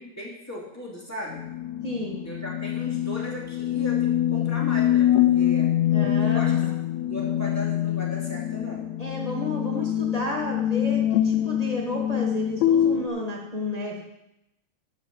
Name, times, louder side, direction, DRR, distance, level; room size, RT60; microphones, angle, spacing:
voice 1, 0.0-1.4 2.2-5.7 6.2-6.5 7.0-8.9, equal, 5° left, -4 dB, 2.2 m, -37 dB
sound 1, 1.3-13.1, left 11 dB, 80° left, 1.8 m, -24 dB
voice 2, 1.8-2.2 5.9-6.7 9.0-14.0, left 1 dB, 25° left, -2 dB, 0.8 m, -32 dB
11.5 x 5.4 x 7.5 m, 0.86 s
omnidirectional pair, 3.3 m